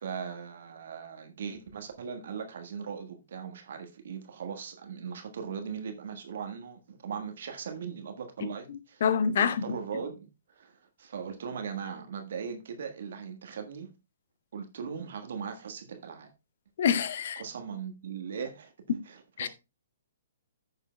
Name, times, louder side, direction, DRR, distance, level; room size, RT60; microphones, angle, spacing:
voice 1, 0.0-9.0 9.3-13.9 14.5-16.3 17.3-18.7 19.0-19.5, right 6 dB, 60° right, 1.4 m, -39 dB
voice 2, 9.0-9.6 16.8-17.4 19.4-19.5, left 7 dB, 55° left, 0.7 m, -25 dB
15.0 x 6.6 x 2.2 m
figure-of-eight pair, 125°, 0 cm